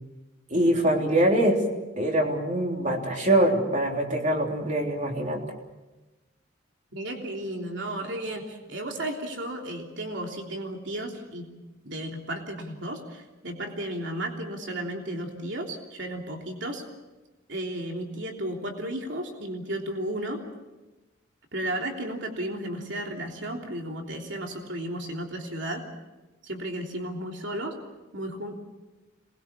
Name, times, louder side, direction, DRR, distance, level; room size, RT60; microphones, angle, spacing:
voice 1, 0.5-1.6 2.0-5.4, right 1 dB, 35° right, 1 dB, 3.5 m, -23 dB
voice 2, 6.9-11.5 11.8-16.8 17.5-20.5 21.5-25.9 26.4-27.8 28.1-28.6, right 1 dB, 60° right, 2 dB, 3.3 m, -34 dB
26.5 x 21.0 x 7.2 m, 1.1 s
head